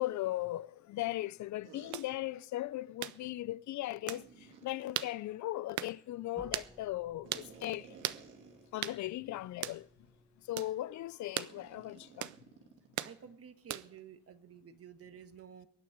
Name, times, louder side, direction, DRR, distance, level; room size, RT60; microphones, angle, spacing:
voice 1, 0.0-4.2 4.6-7.9 8.7-9.9 10.5-12.3, left 15 dB, 70° left, 0.5 m, -38 dB
sound 1, 1.6-2.0 4.1-4.8 7.2-9.0 9.3-9.5 10.0-10.2 11.5-13.3, right 5 dB, 90° right, 2.5 m, -56 dB
sound 2, 1.9-2.1 3.0-3.2 4.1-4.2 5.0-5.1 5.8-6.0 6.5-6.7 7.3-7.5 8.0-8.2 8.8-9.0 9.6-9.8 10.6-10.7 11.4-11.5 12.2-12.4 13.0-13.2 13.7-14.0, right 13 dB, 75° right, 0.7 m, -37 dB
sound 3, 6.3-11.2, right 1 dB, 10° right, 1.8 m, -59 dB
voice 2, 13.0-15.7, right 8 dB, 50° right, 1.4 m, -52 dB
23.0 x 9.3 x 5.1 m
cardioid pair, 90°, 30 cm